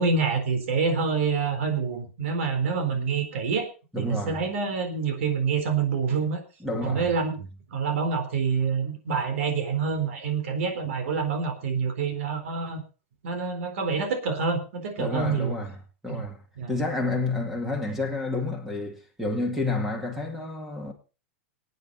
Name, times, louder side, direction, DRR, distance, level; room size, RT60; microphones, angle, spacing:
voice 1, 0.0-3.7 4.0-6.4 6.8-7.4 7.7-12.8 13.2-15.5 16.1-16.2 16.6-16.8, right 5 dB, 70° right, 4.1 m, -27 dB
voice 2, 3.9-4.4 6.6-7.1 15.0-15.8 16.0-20.9, left 2 dB, 5° right, 2.0 m, -30 dB
22.5 x 9.3 x 4.0 m
supercardioid pair, 165°, 7 cm